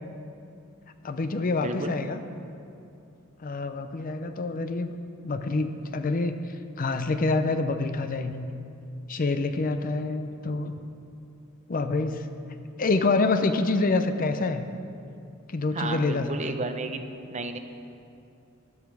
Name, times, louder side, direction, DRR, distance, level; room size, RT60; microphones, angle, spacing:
voice 1, 1.0-2.2 3.4-5.0 5.2-6.4 6.8-8.5 9.1-10.7 11.7-12.3 12.8-14.6 15.5-16.6, left 3 dB, 40° left, 9 dB, 0.6 m, -26 dB
voice 2, 1.6-1.9 15.7-17.0 17.3-17.6, right 3 dB, 35° right, 7 dB, 0.7 m, -32 dB
13.0 x 11.5 x 4.7 m, 2.6 s
head